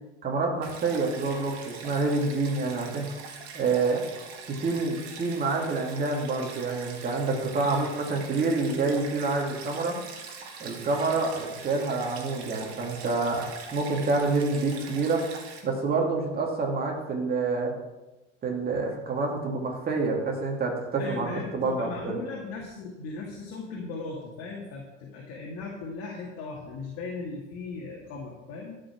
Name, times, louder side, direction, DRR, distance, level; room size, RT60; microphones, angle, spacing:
voice 1, 0.2-3.1 3.5-4.0 4.5-10.0 10.6-15.3 15.6-17.7 18.4-21.3 21.5-22.2, right 3 dB, 25° right, 0 dB, 2.7 m, -27 dB
Stream, 0.6-15.6, right 5 dB, 65° right, 2.0 m, -43 dB
voice 2, 7.6-7.9 21.0-28.8, left 4 dB, 40° left, -2 dB, 2.2 m, -38 dB
12.5 x 5.6 x 6.1 m, 1.1 s
figure-of-eight pair, 80°, 35 cm